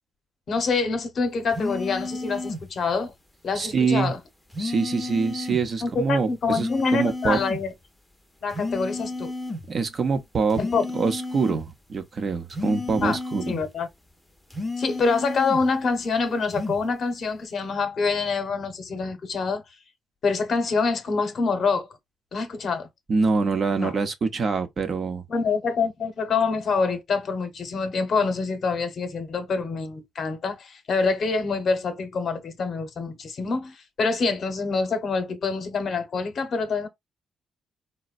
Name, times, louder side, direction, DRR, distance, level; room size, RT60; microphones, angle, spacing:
voice 1, 0.5-3.1 3.4-4.2 5.8-7.7 8.4-9.3 10.6-10.8 13.0-13.2 13.5-13.9 14.8-19.6 20.2-21.9 22.3-22.9 23.8-23.9 25.3-36.9, left 4 dB, 55° left, 0.9 m, -26 dB
sound 1, 1.5-2.7 4.5-5.7 6.5-7.7 8.5-9.7 10.5-11.7 12.5-13.7 14.5-15.7 16.5-16.8, left 2 dB, 5° left, 0.7 m, -32 dB
voice 2, 3.5-4.1 4.6-7.4 9.7-10.6 10.9-13.4 23.1-25.2, right 4 dB, 45° right, 0.7 m, -25 dB
4.0 x 2.2 x 2.4 m
cardioid pair, 90°, 0 cm